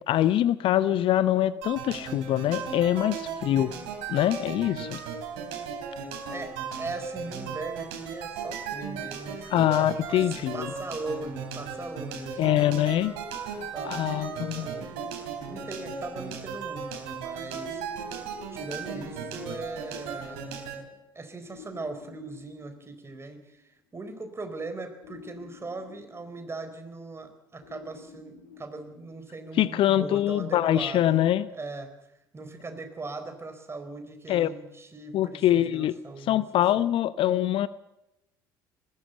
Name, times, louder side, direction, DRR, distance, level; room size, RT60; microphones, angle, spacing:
voice 1, 0.0-3.7 4.1-5.0 9.5-10.7 12.4-13.1 13.8-14.7 29.6-31.5 34.3-34.5 35.1-36.0 36.2-37.7, left 12 dB, 50° left, 16 dB, 0.8 m, -24 dB
sound 1, 1.6-20.8, right 6 dB, 60° right, 4.0 m, -36 dB
voice 2, 6.3-13.1 13.7-17.8 18.5-20.6 21.1-23.6 23.9-31.2 31.5-31.9 32.3-36.8, right 3 dB, 20° right, 8 dB, 4.1 m, -39 dB
sound 2, 12.5-16.2 17.5-20.8 21.5-23.6 25.0-27.1 27.6-29.7 30.7-31.2, left 5 dB, 75° left, 3.4 m, -51 dB
20.0 x 16.0 x 8.0 m, 0.89 s
figure-of-eight pair, 60°, 12 cm